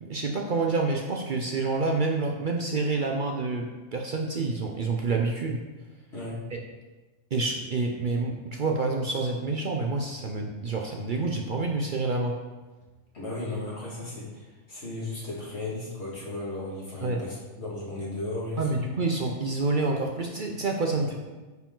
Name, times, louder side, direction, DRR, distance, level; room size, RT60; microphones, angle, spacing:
voice 1, 0.0-5.6 6.5-6.6 7.3-12.4 17.0-17.2 18.6-21.2, right 3 dB, 50° right, 1 dB, 0.7 m, -28 dB
voice 2, 13.1-18.8 20.9-21.1, left 2 dB, 60° left, -5 dB, 2.3 m, -35 dB
9.3 x 4.9 x 3.8 m, 1.2 s
omnidirectional pair, 1.3 m